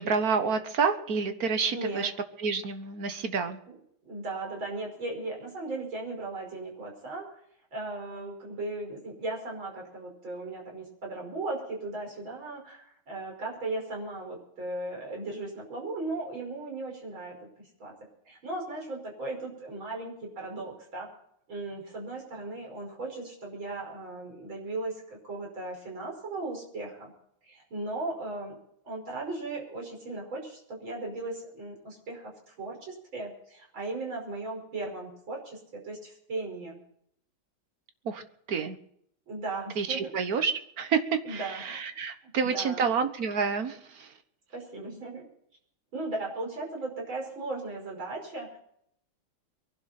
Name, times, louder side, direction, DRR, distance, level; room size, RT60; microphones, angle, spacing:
voice 1, 0.0-2.1 2.4-3.6 38.0-38.2 38.5-38.8 39.8-40.5 40.8-44.1, right 5 dB, 50° right, 8 dB, 1.6 m, -28 dB
voice 2, 1.7-2.1 4.0-7.3 7.7-17.9 18.3-21.2 21.5-27.1 27.4-28.6 28.8-32.3 32.6-36.8 39.3-40.1 41.2-41.8 42.5-42.9 44.5-45.3 45.9-48.6, right 2 dB, 70° right, 0 dB, 6.1 m, -37 dB
23.5 x 11.5 x 4.3 m, 0.71 s
omnidirectional pair, 2.2 m